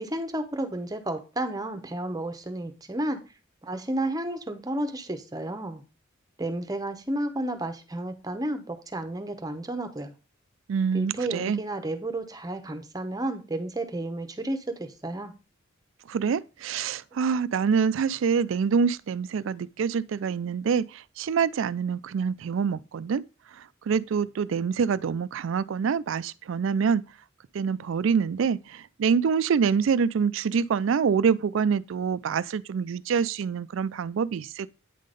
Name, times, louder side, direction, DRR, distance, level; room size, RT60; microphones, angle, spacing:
voice 1, 0.0-3.2 3.6-5.8 6.4-10.1 10.9-15.3, right 1 dB, 20° right, 0.9 m, -32 dB
voice 2, 10.7-11.6 16.1-23.2 23.9-27.0 27.5-34.8, right 6 dB, 70° right, 0.4 m, -26 dB
9.1 x 3.8 x 5.1 m
head